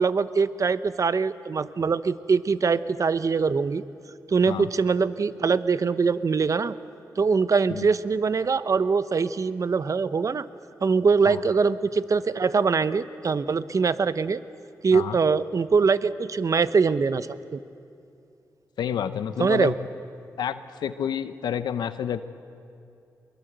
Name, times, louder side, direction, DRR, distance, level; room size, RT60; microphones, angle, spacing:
voice 1, 0.0-3.8 4.3-6.7 7.2-10.4 10.8-14.4 14.8-17.6 19.4-19.7, right 5 dB, 50° right, 14 dB, 0.8 m, -23 dB
voice 2, 18.8-19.7 20.4-22.2, left 9 dB, 90° left, 12 dB, 0.8 m, -29 dB
22.5 x 22.5 x 8.0 m, 2.6 s
cardioid pair, 65°, 7 cm